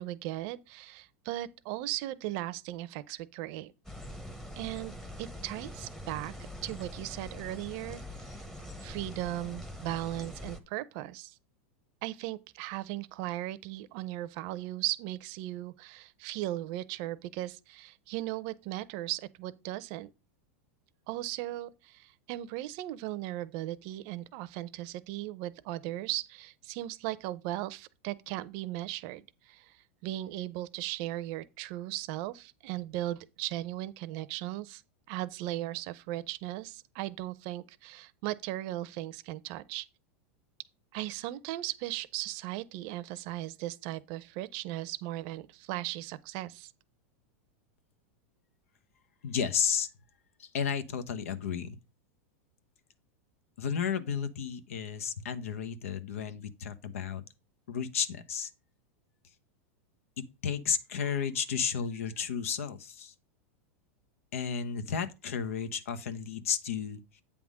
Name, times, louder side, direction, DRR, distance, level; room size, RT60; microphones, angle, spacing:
voice 1, 0.0-3.7 4.6-6.3 6.6-8.4 8.8-11.4 12.0-20.1 21.1-29.8 30.0-34.8 35.1-39.9 40.9-46.7, right 15 dB, 55° right, 0.6 m, -37 dB
sound 1, 3.8-10.6, left 1 dB, 5° left, 0.9 m, -44 dB
voice 2, 49.2-49.9 50.4-51.8 53.6-57.2 57.7-58.5 60.4-63.1 64.3-67.2, left 7 dB, 85° left, 0.9 m, -33 dB
8.5 x 3.6 x 6.2 m
supercardioid pair, 130°, 7 cm